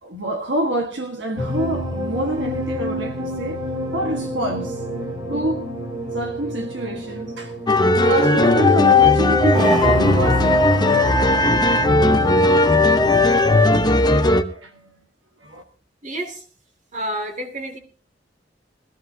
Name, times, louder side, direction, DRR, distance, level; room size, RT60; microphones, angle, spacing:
voice 1, 0.0-3.6 3.9-4.8 5.3-5.7 6.1-7.6 7.9-11.5 11.8-12.7 13.5-13.7 14.2-15.0 15.4-15.6, right 1 dB, 75° right, 1.6 m, -28 dB
sound 1, 1.4-14.1, left 1 dB, 25° right, 2.7 m, -28 dB
sound 2, 7.7-14.4, left 2 dB, 25° left, 0.9 m, -16 dB
voice 2, 16.0-16.4 16.9-17.8, right 1 dB, 45° right, 2.6 m, -29 dB
21.0 x 15.0 x 2.8 m
head